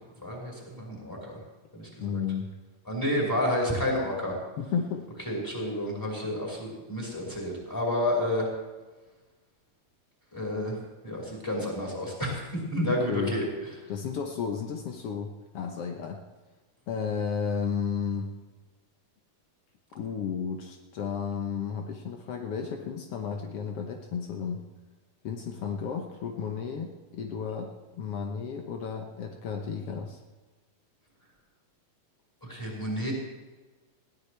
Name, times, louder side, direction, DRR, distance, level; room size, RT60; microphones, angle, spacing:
voice 1, 0.2-1.4 1.7-2.2 2.8-4.4 5.2-8.5 10.3-10.8 11.0-13.4 32.4-33.1, left 1 dB, 5° left, -3 dB, 5.0 m, -30 dB
voice 2, 2.0-2.5 4.6-5.0 13.1-13.3 13.9-16.2 16.9-18.3 19.9-24.6 25.2-30.2, left 6 dB, 80° left, 2 dB, 1.3 m, -33 dB
20.5 x 16.5 x 3.4 m, 1.3 s
omnidirectional pair, 4.3 m